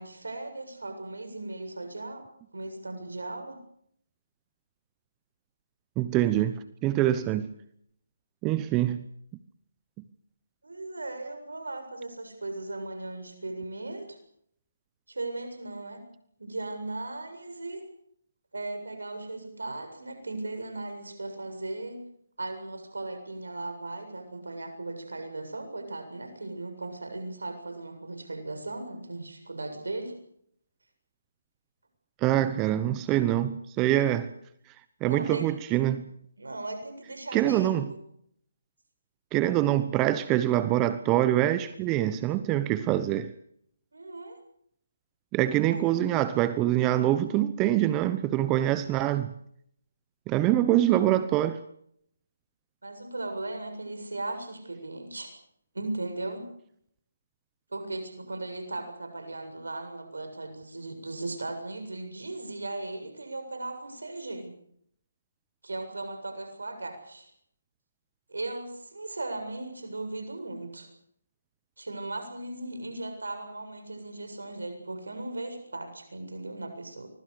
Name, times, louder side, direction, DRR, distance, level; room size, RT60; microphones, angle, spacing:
voice 1, 0.0-2.3 2.5-3.6 10.6-14.2 15.1-16.1 16.4-17.8 18.5-22.0 22.4-30.1 35.1-35.5 36.4-37.8 43.9-44.4 45.7-45.8 52.8-55.3 55.7-56.5 57.7-64.5 65.6-67.3 68.3-70.9 71.8-77.1, right 2 dB, 85° right, 7.4 m, -37 dB
voice 2, 6.0-7.5 8.4-9.0 32.2-34.3 35.0-36.1 37.3-37.9 39.3-43.3 45.3-49.3 50.3-51.6, right 13 dB, 20° right, 1.0 m, -25 dB
25.0 x 21.5 x 6.7 m
figure-of-eight pair, 150°, 0 cm